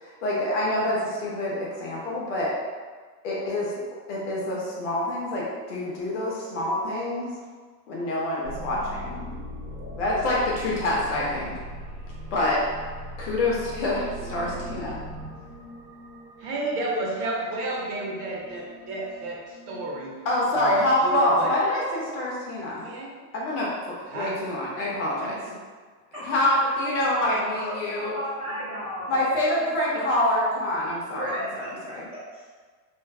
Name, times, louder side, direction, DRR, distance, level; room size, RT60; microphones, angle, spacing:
voice 1, 0.0-2.5 3.2-3.7 4.1-7.3 7.9-9.1 9.9-11.5 12.3-12.6 13.2-15.0 20.2-22.9 23.3-25.3 26.2-28.1 29.1-31.3 31.6-32.1, left 1 dB, 50° left, -5 dB, 0.5 m, -26 dB
sound 1, 8.4-20.3, equal, 90° right, 1.2 m, -40 dB
voice 2, 16.4-20.2 20.5-21.5 22.8-23.1 24.1-24.3 25.2-25.5 27.2-27.4, right 2 dB, 65° right, -3 dB, 0.7 m, -32 dB
voice 3, 26.1-26.5 27.5-29.1 31.0-32.5, equal, 15° right, -12 dB, 0.8 m, -35 dB
2.5 x 2.2 x 2.2 m, 1.5 s
supercardioid pair, 175°, 50 cm